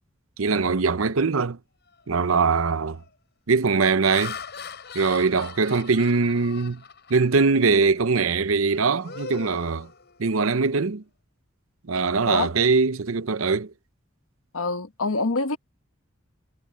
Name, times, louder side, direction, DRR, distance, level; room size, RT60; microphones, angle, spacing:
voice 1, 0.4-1.6 2.1-3.0 3.5-4.4 4.9-6.8 7.1-9.9 10.2-11.0 11.9-13.7, right 4 dB, 75° right, 0.7 m, -22 dB
Laughter, 1.9-2.2 2.8-3.1 3.7-7.5 8.0-8.2 8.6-10.5, left 6 dB, 50° left, 7.1 m, -41 dB
voice 2, 14.5-15.6, left 3 dB, 75° left, 1.1 m, -25 dB
head